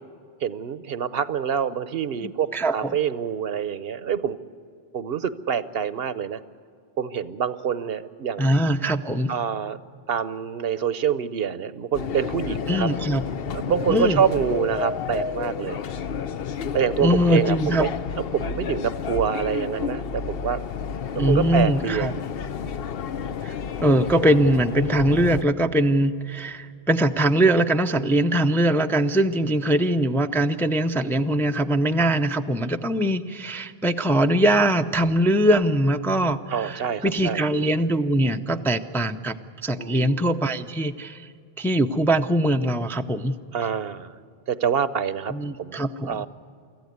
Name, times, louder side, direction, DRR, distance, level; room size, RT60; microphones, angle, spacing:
voice 1, 0.4-4.4 4.9-6.4 7.0-8.6 9.3-9.8 10.1-12.9 13.5-15.8 16.7-17.9 18.2-20.6 21.1-22.1 36.5-37.4 39.8-40.3 43.5-44.2 44.5-45.3 45.6-46.3, right 7 dB, 70° right, 15 dB, 1.0 m, -26 dB
voice 2, 2.2-3.0 8.4-9.3 12.7-13.2 13.9-14.2 17.0-17.9 21.1-22.1 23.4-23.5 23.8-41.3 41.6-43.4 45.3-46.2, right 1 dB, 5° left, 7 dB, 0.5 m, -22 dB
sound 1, 11.9-25.4, left 7 dB, 70° left, 0.9 m, -31 dB
24.5 x 14.5 x 9.5 m, 2.4 s
omnidirectional pair, 1.0 m